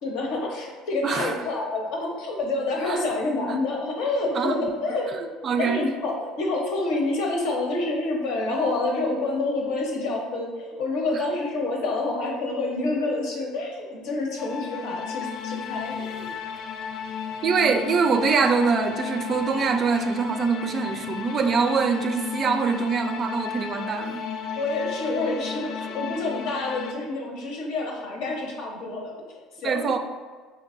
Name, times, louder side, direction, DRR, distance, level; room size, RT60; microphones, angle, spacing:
voice 1, 0.0-5.1 5.5-16.3 24.6-29.1 29.6-29.9, left 2 dB, 75° left, 0 dB, 0.8 m, -28 dB
voice 2, 1.0-1.3 2.9-3.1 4.3-4.7 5.1-5.9 11.1-11.3 17.4-24.2 29.6-30.0, right 5 dB, 45° right, 7 dB, 0.3 m, -24 dB
sound 1, 14.4-26.9, left 7 dB, 60° left, 0.3 m, -34 dB
4.5 x 2.6 x 2.5 m, 1.4 s
supercardioid pair, 100°, 0 cm